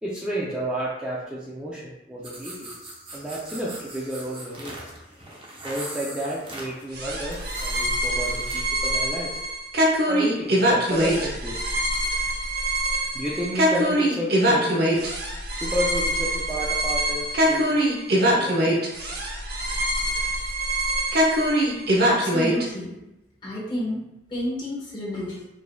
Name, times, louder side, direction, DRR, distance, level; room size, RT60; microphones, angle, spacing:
voice 1, 0.0-4.9 5.6-9.4 10.1-11.6 13.1-14.8 15.6-17.8 18.1-18.8, equal, 5° right, -7 dB, 0.4 m, -31 dB
sound 1, 2.2-8.8, right 1 dB, 30° right, 0.8 m, -40 dB
sound 2, 6.9-22.7, right 1 dB, 60° right, 0.7 m, -23 dB
voice 2, 22.0-23.0 23.4-24.0 24.3-25.4, left 1 dB, 25° left, -6 dB, 1.3 m, -30 dB
4.7 x 2.7 x 2.3 m, 0.95 s
head